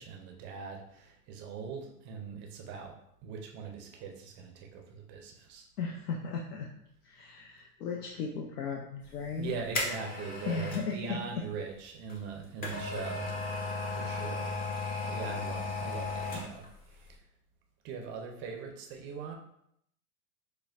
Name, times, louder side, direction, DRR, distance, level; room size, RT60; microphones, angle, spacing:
voice 1, 0.0-3.0 3.2-5.7 9.4-14.6 15.0-17.2 17.8-19.3, right 5 dB, 25° right, 2 dB, 0.5 m, -41 dB
voice 2, 5.8-6.7 7.0-9.5 10.5-11.2, left 5 dB, 75° left, 0 dB, 0.7 m, -36 dB
sound 1, 9.1-10.9 12.1-16.8 17.1-17.2, left 3 dB, 20° left, 0.7 m, -35 dB
6.6 x 2.2 x 2.4 m, 0.75 s
hypercardioid pair, 115°, 47 cm